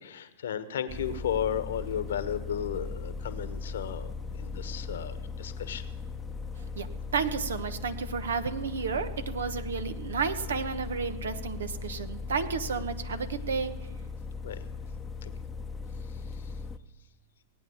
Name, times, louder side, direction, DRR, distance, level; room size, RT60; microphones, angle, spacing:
voice 1, 0.0-5.8 14.4-14.6 15.2-15.3, left 9 dB, 70° left, 12 dB, 1.2 m, -34 dB
sound 1, 0.9-16.8, left 4 dB, 20° left, 0.8 m, -38 dB
voice 2, 7.1-13.7, right 5 dB, 75° right, 11 dB, 1.1 m, -32 dB
18.5 x 9.0 x 7.1 m, 1.0 s
hypercardioid pair, 105°, 0 cm